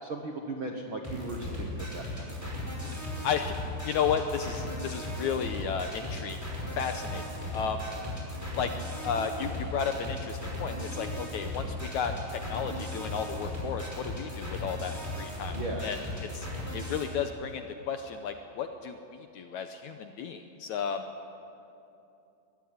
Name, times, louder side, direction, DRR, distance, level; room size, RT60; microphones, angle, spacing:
voice 1, 0.0-2.5 15.5-15.9, right 2 dB, 55° right, 2 dB, 1.4 m, -37 dB
sound 1, 1.0-17.0, left 1 dB, 5° right, 4.8 m, -37 dB
voice 2, 2.8-3.6 3.8-6.4 6.8-7.2 7.5-7.9 8.6-8.7 9.0-16.0 16.3-16.5 16.7-21.1, left 7 dB, 75° left, 7 dB, 1.9 m, -33 dB
22.5 x 14.5 x 9.9 m, 2.7 s
omnidirectional pair, 4.1 m